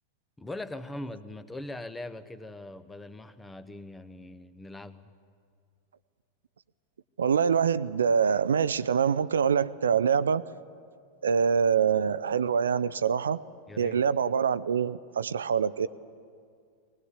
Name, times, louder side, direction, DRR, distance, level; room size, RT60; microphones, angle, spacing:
voice 1, 0.4-5.1 13.7-14.0, left 1 dB, 10° left, 13 dB, 0.9 m, -41 dB
voice 2, 7.2-10.4 11.2-13.4 13.8-15.9, right 7 dB, 70° right, 16 dB, 0.5 m, -25 dB
20.5 x 19.5 x 8.2 m, 2.2 s
figure-of-eight pair, 90°, 0 cm